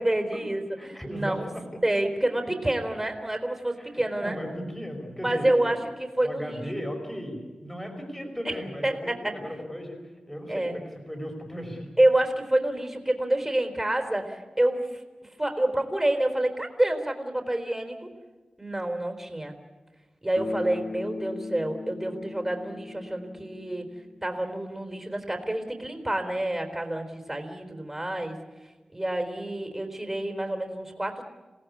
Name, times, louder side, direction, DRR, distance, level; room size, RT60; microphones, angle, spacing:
voice 1, 0.0-1.5 1.8-4.4 5.2-6.6 8.4-9.4 10.5-10.8 12.0-18.1 18.6-19.6 20.2-23.9 24.2-28.4 28.9-31.2, right 1 dB, 15° right, 4 dB, 3.8 m, -28 dB
voice 2, 0.8-1.8 3.8-5.7 6.2-10.0 10.3-11.9, equal, 10° left, 3 dB, 5.2 m, -36 dB
Bass guitar, 20.4-24.4, left 3 dB, 75° left, 2.0 m, -38 dB
28.0 x 18.0 x 8.5 m, 1.2 s
wide cardioid pair, 95°, 2 cm